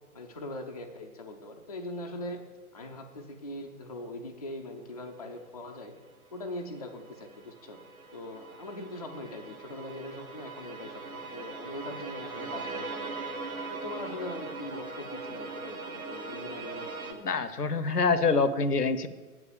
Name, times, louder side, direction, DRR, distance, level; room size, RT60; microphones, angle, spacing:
voice 1, 0.1-2.4 2.7-5.9 6.3-7.8 8.1-13.3 13.7-17.3, left 1 dB, 25° left, 1 dB, 0.4 m, -41 dB
sound 1, 6.0-6.1 6.4-17.1, right 3 dB, 65° right, 1.3 m, -40 dB
voice 2, 17.2-19.1, left 4 dB, 80° left, 13 dB, 0.8 m, -25 dB
7.9 x 4.9 x 7.1 m, 1.4 s
figure-of-eight pair, 130°, 46 cm